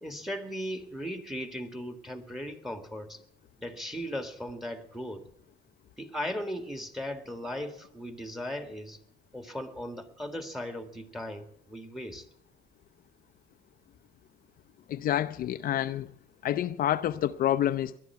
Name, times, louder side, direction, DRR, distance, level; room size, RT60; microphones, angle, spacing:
voice 1, 0.0-3.2 3.6-5.2 6.0-9.0 9.3-12.2, equal, ahead, 2.0 m, -37 dB
voice 2, 14.9-16.1 16.4-18.0, left 11 dB, 60° left, 0.5 m, -28 dB
19.5 x 11.5 x 4.6 m
cardioid pair, 110°, 17 cm